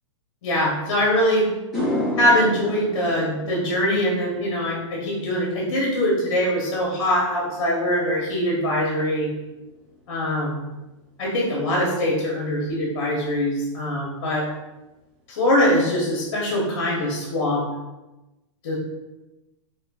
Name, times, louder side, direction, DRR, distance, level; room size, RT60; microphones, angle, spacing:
voice 1, 0.4-1.5 2.2-9.3 10.1-10.6 11.2-14.5 15.3-17.6 18.6-18.8, left 1 dB, 50° left, -3 dB, 1.0 m, -22 dB
sound 1, 1.5-10.0 10.3-10.8 14.4-14.5 16.1-16.2 16.5-16.6 16.9-17.4, left 1 dB, ahead, 1.1 m, -34 dB
5.5 x 2.3 x 2.4 m, 1.0 s
supercardioid pair, 170°, 16 cm